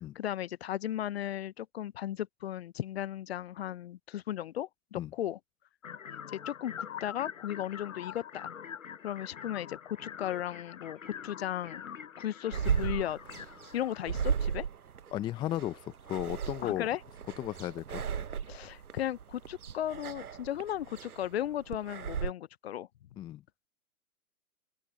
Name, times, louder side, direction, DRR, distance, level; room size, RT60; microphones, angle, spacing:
voice 1, 0.1-5.4 6.1-8.5 9.0-11.8 12.2-13.2 13.7-14.7 16.6-17.0 18.5-22.9, left 11 dB, 45° left, 0.9 m, -36 dB
sound 1, 5.8-14.0, left 8 dB, 65° left, 5.7 m, -44 dB
sound 2, 12.5-22.3, right 7 dB, 85° right, 0.9 m, -36 dB
voice 2, 15.1-16.9 17.4-18.0 23.2-23.4, left 13 dB, 10° left, 0.7 m, -35 dB
open air
figure-of-eight pair, 125°, 43 cm